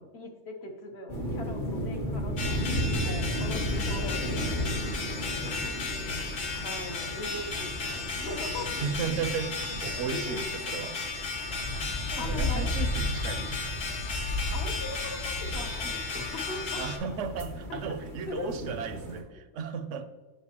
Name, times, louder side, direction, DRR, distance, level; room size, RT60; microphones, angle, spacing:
voice 1, 0.0-4.8 6.6-8.8 10.1-10.5 12.2-12.8 14.5-16.8 17.7-17.8 18.3-18.5, left 2 dB, 60° left, 3 dB, 1.1 m, -40 dB
sound 1, 1.1-19.2, equal, 45° left, 1.3 m, -34 dB
sound 2, 2.4-17.0, left 4 dB, 90° left, 1.3 m, -35 dB
voice 2, 8.6-11.0 12.1-13.5 16.8-20.1, right 6 dB, 75° right, 11 dB, 0.9 m, -35 dB
8.4 x 6.7 x 2.9 m, 1.3 s
omnidirectional pair, 1.3 m